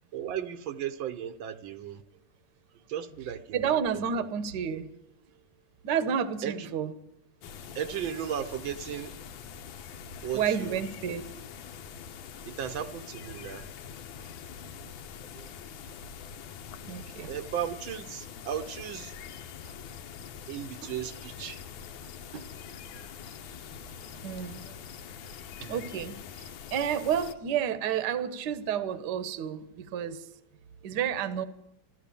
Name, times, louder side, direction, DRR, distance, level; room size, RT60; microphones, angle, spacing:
voice 1, 0.1-2.0 2.9-3.8 6.4-6.7 7.7-9.1 10.2-10.8 12.5-13.6 17.3-19.1 20.5-21.6 25.6-25.7, right 9 dB, 85° right, 9 dB, 1.6 m, -35 dB
voice 2, 3.5-4.9 5.8-6.9 10.3-11.2 15.3-15.5 16.8-17.3 22.3-22.8 24.2-24.7 25.6-30.3 30.8-31.4, right 8 dB, 70° right, 11 dB, 1.4 m, -31 dB
sound 1, 7.4-27.3, left 7 dB, 90° left, 1.6 m, -44 dB
14.5 x 12.5 x 6.9 m, 0.84 s
omnidirectional pair, 2.1 m